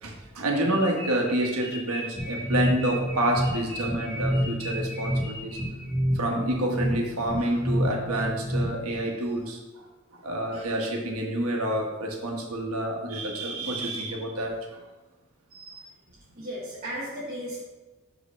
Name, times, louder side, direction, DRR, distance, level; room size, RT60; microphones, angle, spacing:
voice 1, 0.0-5.6 6.1-9.6 10.1-14.8 15.5-15.9, right 1 dB, 90° right, 0 dB, 1.3 m, -28 dB
sound 1, 0.7-6.0, equal, 25° left, 2.2 m, -39 dB
sound 2, 2.2-9.0, equal, 5° left, 1.3 m, -29 dB
voice 2, 16.4-17.6, equal, 45° right, -8 dB, 1.4 m, -35 dB
5.3 x 4.0 x 5.7 m, 1.2 s
head